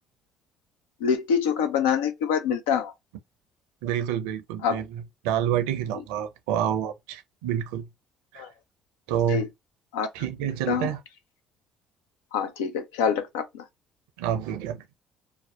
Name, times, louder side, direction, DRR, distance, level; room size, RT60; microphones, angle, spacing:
voice 1, 1.0-2.9 4.6-4.8 8.4-8.5 9.3-9.5 9.9-10.1 10.7-10.9 12.3-13.6, left 7 dB, 85° left, 0.4 m, -25 dB
voice 2, 3.8-7.9 8.3-8.4 9.1-9.5 10.1-11.0 14.2-14.8, right 10 dB, 80° right, 0.4 m, -28 dB
2.6 x 2.1 x 2.3 m
hypercardioid pair, 60°, 0 cm